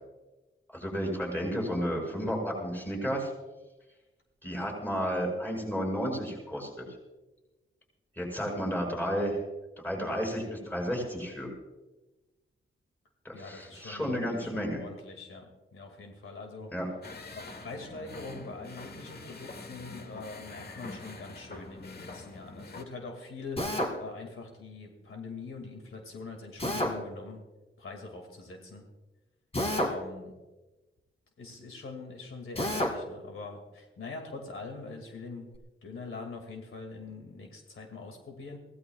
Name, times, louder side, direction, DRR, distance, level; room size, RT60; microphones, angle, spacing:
voice 1, 0.7-3.3 4.4-6.8 8.2-9.4 9.8-11.5 13.2-14.8 16.7-16.9, equal, 10° left, 0 dB, 5.9 m, -32 dB
voice 2, 13.3-16.7 17.3-23.7 24.0-27.4 27.8-28.8 29.7-30.3 31.4-35.5 35.8-38.6, left 3 dB, 80° left, 3 dB, 2.3 m, -43 dB
sound 1, 17.0-22.8, left 3 dB, 50° left, 1.2 m, -45 dB
Drill, 23.6-24.0 26.6-27.0 29.5-30.0 32.5-33.0, left 1 dB, 30° left, 2.0 m, -29 dB
24.0 x 17.0 x 2.4 m, 1.1 s
wide cardioid pair, 170°, 21 cm